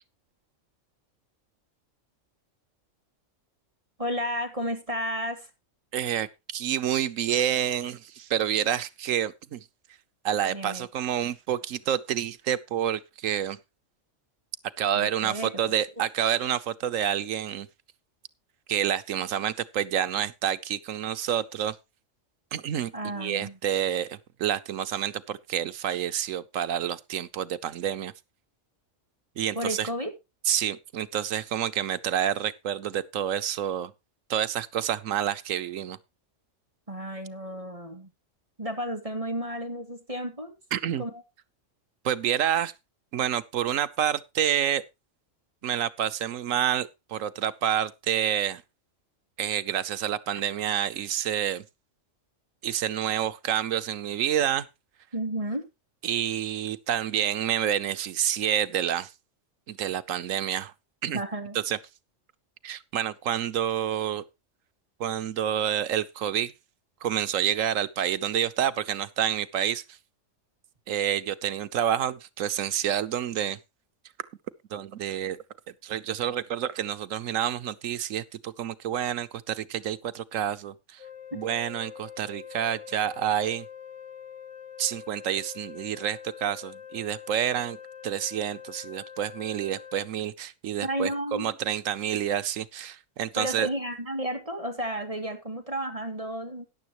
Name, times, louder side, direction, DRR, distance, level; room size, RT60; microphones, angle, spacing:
voice 1, 4.0-5.5 10.5-10.9 14.9-15.5 16.0-16.1 22.9-23.6 29.5-30.1 36.9-38.1 38.6-40.5 41.0-41.1 55.1-55.7 61.1-61.6 81.3-81.4 90.8-91.5 93.4-96.6, equal, 25° right, 2.3 m, -32 dB
voice 2, 5.9-9.6 10.2-13.6 14.8-17.7 18.7-21.8 22.5-28.1 29.4-29.9 30.4-33.9 34.3-36.0 40.7-41.0 42.0-42.7 43.1-44.8 45.6-48.6 49.4-51.6 52.6-54.7 56.0-59.1 59.7-60.7 61.0-61.2 61.5-61.8 62.6-64.2 65.0-66.5 67.0-69.8 70.9-73.6 74.7-75.4 75.8-81.0 81.3-83.6 84.8-87.8 88.0-93.7, right 10 dB, 90° right, 1.2 m, -28 dB
Wind instrument woodwind instrument, 81.0-90.1, left 8 dB, 25° left, 1.1 m, -44 dB
13.5 x 10.0 x 3.0 m
omnidirectional pair, 1.3 m